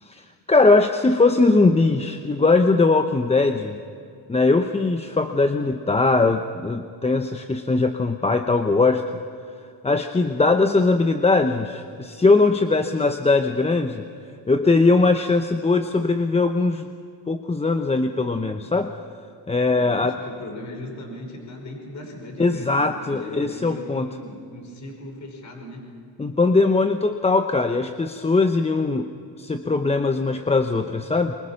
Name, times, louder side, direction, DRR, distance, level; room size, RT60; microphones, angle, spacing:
voice 1, 0.0-3.8 4.3-9.0 9.8-14.0 14.5-16.9 17.3-18.9 19.5-20.2 22.4-24.1 26.2-29.1 29.4-31.3, left 3 dB, 15° left, 7 dB, 0.8 m, -20 dB
voice 2, 19.7-25.8, left 1 dB, 40° left, 2 dB, 5.6 m, -38 dB
25.5 x 24.0 x 5.9 m, 2.4 s
cardioid pair, 105°, 44 cm